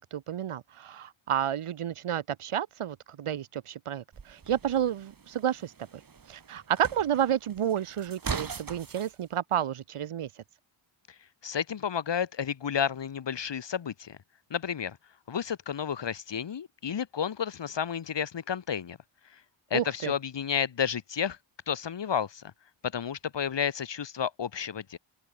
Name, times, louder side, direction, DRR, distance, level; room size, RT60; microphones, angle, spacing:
voice 1, 0.1-5.7 6.3-10.3 19.7-20.1, right 10 dB, 80° right, 1.6 m, -30 dB
sound 1, 4.1-9.1, right 5 dB, 40° right, 2.7 m, -40 dB
voice 2, 11.4-14.2 14.5-15.0 15.3-19.0 19.7-21.4 21.7-22.5 22.9-25.0, left 8 dB, 55° left, 1.8 m, -31 dB
open air
wide cardioid pair, 125°, 50 cm